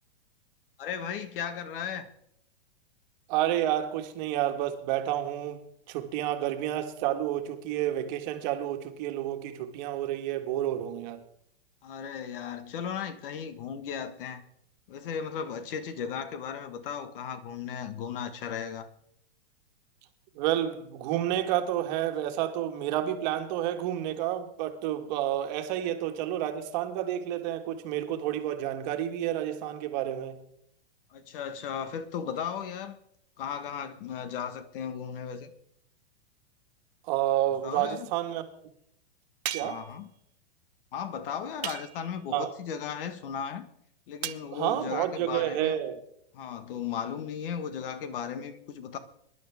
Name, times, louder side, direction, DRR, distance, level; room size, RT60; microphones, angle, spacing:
voice 1, 0.8-2.1 11.8-14.5 14.9-18.9 31.1-33.0 33.4-35.5 37.6-38.1 39.6-40.1 40.9-43.7 44.1-45.8 46.3-49.0, left 7 dB, 55° left, 1.7 m, -36 dB
voice 2, 3.3-5.6 5.9-11.2 20.4-30.4 37.1-38.4 39.5-39.8 42.3-42.5 44.5-46.0, right 12 dB, 45° right, 1.7 m, -30 dB
sound 1, 39.5-39.9 41.6-42.2 44.2-44.5, right 12 dB, 75° right, 1.0 m, -36 dB
22.5 x 11.0 x 3.6 m
hypercardioid pair, 145°, 32 cm